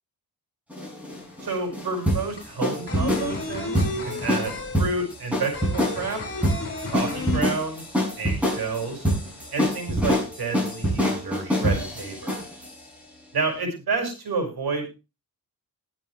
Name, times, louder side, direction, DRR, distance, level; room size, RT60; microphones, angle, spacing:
sound 1, 0.7-12.7, equal, 5° right, 6.0 m, -26 dB
sound 2, 1.1-1.2 1.5-8.1 8.3-8.4 8.8-9.6, left 3 dB, 40° left, 4.7 m, -33 dB
voice 1, 1.4-6.4 6.9-9.1 9.5-12.4 13.3-15.0, right 4 dB, 85° right, 3 dB, 5.8 m, -30 dB
21.0 x 7.6 x 3.3 m, 0.28 s
wide cardioid pair, 170°, 37 cm